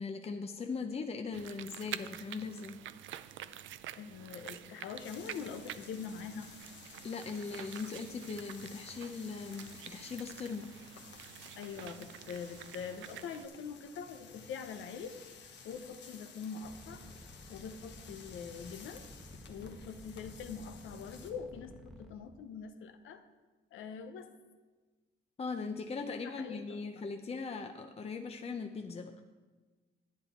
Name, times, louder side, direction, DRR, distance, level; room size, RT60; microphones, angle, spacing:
voice 1, 0.0-2.8 7.0-10.7 25.4-29.1, left 4 dB, 30° left, 5 dB, 0.7 m, -39 dB
sound 1, 1.3-13.5, right 12 dB, 75° right, 0.5 m, -48 dB
voice 2, 4.0-6.5 11.6-17.0 17.5-19.1 19.5-23.2 23.7-24.3 26.2-27.1, left 6 dB, 80° left, 8 dB, 0.9 m, -44 dB
sound 2, 5.0-21.3, left 5 dB, 65° left, 1.3 m, -54 dB
sound 3, 16.6-22.1, equal, ahead, 1.2 m, -52 dB
10.5 x 9.3 x 4.4 m, 1.3 s
cardioid pair, 90°, 20 cm